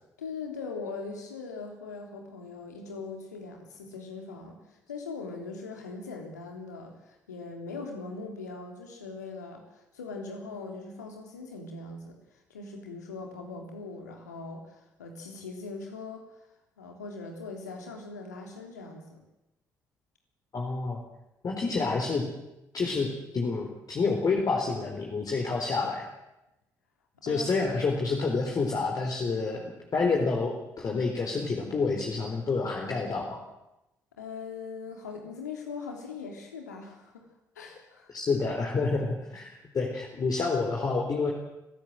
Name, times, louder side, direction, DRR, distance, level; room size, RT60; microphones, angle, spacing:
voice 1, 0.2-16.5 16.8-19.2 27.2-27.5 34.2-37.2 37.5-38.1, left 4 dB, 85° left, 2 dB, 3.4 m, -41 dB
voice 2, 20.5-21.0 21.4-22.2 22.7-26.1 27.2-33.4 38.1-41.3, left 4 dB, 45° left, 0 dB, 4.0 m, -28 dB
25.5 x 15.5 x 7.8 m, 0.95 s
figure-of-eight pair, 45°, 9 cm